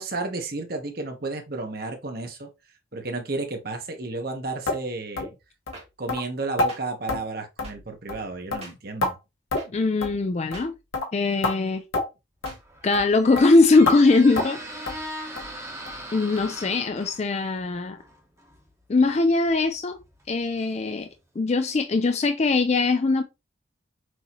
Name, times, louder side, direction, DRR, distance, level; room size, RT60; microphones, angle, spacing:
voice 1, 0.0-2.5 2.9-5.3 6.0-9.2, right 3 dB, 50° right, 1.1 m, -32 dB
sound 1, 4.7-4.8 5.2-5.3 5.7-5.8 6.1-6.2 6.6-6.7 7.1-7.2 7.6-7.8 8.1-8.2 8.5-9.1 9.5-9.7 10.0-10.2 10.5-10.7 10.9-11.1 11.4-11.6 11.9-12.1 12.4-12.6 12.9-13.1 13.4-13.5 13.9-14.0 14.4-14.6 14.9-15.0 15.4-15.5 15.9-16.0 16.4-16.5 16.9-17.0, left 2 dB, 90° left, 1.2 m, -27 dB
sound 2, 5.7-5.8 6.7-6.8 7.6-7.7 8.6-8.7 9.6-9.7 10.5-10.7 11.5-11.6 12.4-12.6, right 3 dB, 30° right, 1.5 m, -42 dB
voice 2, 9.7-10.7 11.1-11.8 12.8-14.6 16.1-18.0 18.9-20.0 20.3-21.1 21.4-23.2, left 3 dB, 35° left, 0.4 m, -21 dB
Squeak, 12.6-21.2, right 1 dB, 15° right, 1.0 m, -41 dB
6.2 x 2.8 x 3.0 m
head